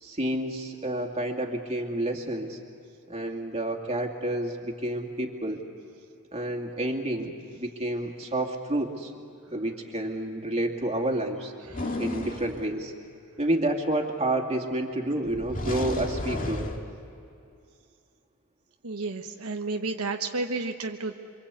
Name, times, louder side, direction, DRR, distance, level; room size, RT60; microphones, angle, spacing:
voice 1, 0.0-2.6 3.1-5.6 6.3-9.1 9.5-11.5 12.0-12.9 13.4-16.7, right 1 dB, 30° right, 2 dB, 2.5 m, -29 dB
sound 1, 11.7-12.6 15.3-16.8, left 1 dB, 40° left, 2.1 m, -32 dB
voice 2, 18.8-21.2, right 3 dB, 75° right, 3 dB, 1.2 m, -32 dB
28.0 x 24.5 x 8.4 m, 2.5 s
head